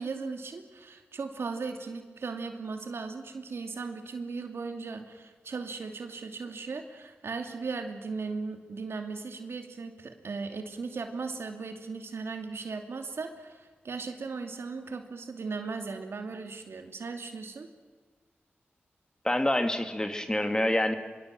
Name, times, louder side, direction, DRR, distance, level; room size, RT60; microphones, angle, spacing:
voice 1, 0.0-17.7, right 4 dB, 75° right, 5 dB, 2.6 m, -37 dB
voice 2, 19.2-20.9, left 1 dB, 15° left, 7 dB, 2.3 m, -27 dB
23.5 x 23.0 x 7.6 m, 1.4 s
cardioid pair, 55°, 4 cm